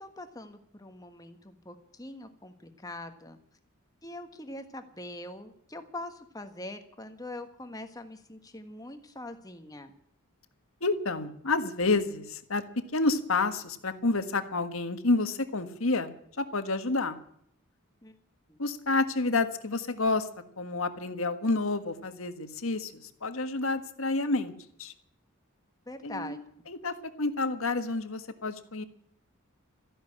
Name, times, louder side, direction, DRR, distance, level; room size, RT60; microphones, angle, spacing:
voice 1, 0.0-3.4 4.0-9.9 18.0-18.2 18.5-18.6 25.9-26.4, left 1 dB, 15° left, 7 dB, 1.4 m, -43 dB
voice 2, 10.8-12.6 12.9-16.1 16.4-17.2 18.6-20.3 20.6-24.5 24.8-24.9 26.0-28.8, left 3 dB, 70° left, 9 dB, 1.6 m, -29 dB
14.0 x 11.5 x 8.7 m, 0.69 s
head